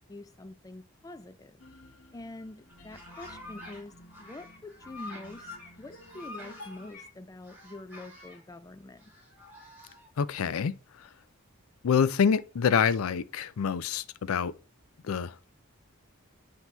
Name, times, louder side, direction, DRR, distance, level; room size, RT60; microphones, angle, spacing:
voice 1, 0.0-1.6 2.1-9.1, left 2 dB, 15° left, 0.3 m, -46 dB
sound 1, 1.6-6.9, left 1 dB, 60° left, 1.1 m, -52 dB
sound 2, 2.7-3.8 4.1-7.1 7.4-8.4 9.0-10.1, left 2 dB, 10° right, 2.2 m, -47 dB
voice 2, 10.2-10.7 11.8-14.5 15.0-15.5, left 6 dB, 80° left, 0.4 m, -26 dB
8.0 x 2.9 x 4.5 m
head